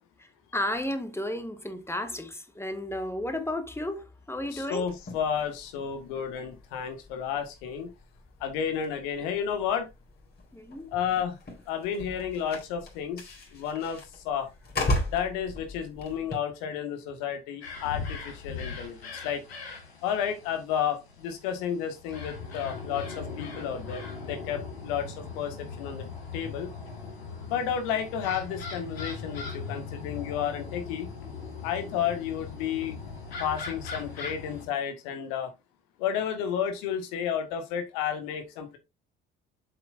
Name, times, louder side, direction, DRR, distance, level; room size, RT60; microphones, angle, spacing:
voice 1, 0.2-4.9 10.5-10.9, left 1 dB, 10° left, 1.9 m, -33 dB
voice 2, 4.5-7.9 8.4-9.9 10.9-11.4 11.7-14.5 15.1-19.4 20.0-24.0 24.3-26.1 26.3-26.7 27.5-31.1 31.6-33.0 33.4-35.5 36.0-38.8, left 8 dB, 65° left, 1.8 m, -31 dB
sound 1, 4.9-16.3, left 1 dB, 35° left, 4.0 m, -37 dB
sound 2, 17.6-34.6, left 4 dB, 80° left, 2.4 m, -39 dB
7.8 x 7.7 x 2.6 m
figure-of-eight pair, 50°, 30 cm